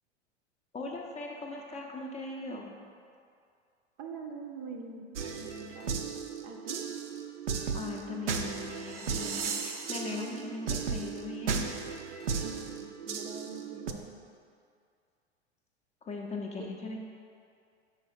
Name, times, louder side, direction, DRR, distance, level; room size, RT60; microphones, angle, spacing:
voice 1, 0.7-2.7 7.7-11.7 16.0-17.0, left 3 dB, 20° left, 0 dB, 0.6 m, -39 dB
voice 2, 4.0-6.1 6.4-6.8 12.4-14.1 16.6-16.7, right 4 dB, 40° right, 3 dB, 0.6 m, -44 dB
sound 1, 5.2-13.9, right 6 dB, 80° right, 0.6 m, -35 dB
5.3 x 4.1 x 5.0 m, 2.3 s
figure-of-eight pair, 90°, 35 cm